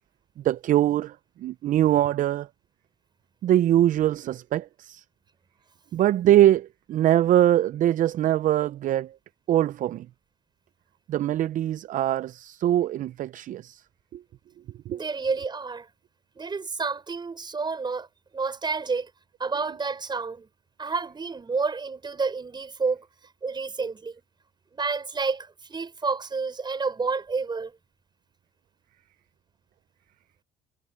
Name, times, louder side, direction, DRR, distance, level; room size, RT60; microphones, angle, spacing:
voice 1, 0.4-2.5 3.4-5.0 5.9-9.2 9.5-10.1 11.1-13.8 14.1-14.2 14.9-15.0, right 12 dB, 50° right, 0.4 m, -23 dB
voice 2, 14.9-15.9 16.4-18.1 18.3-19.1 19.4-20.5 20.8-23.1 23.4-24.2 24.7-27.7, right 4 dB, 25° right, 5.9 m, -29 dB
cardioid pair, 110°, 17 cm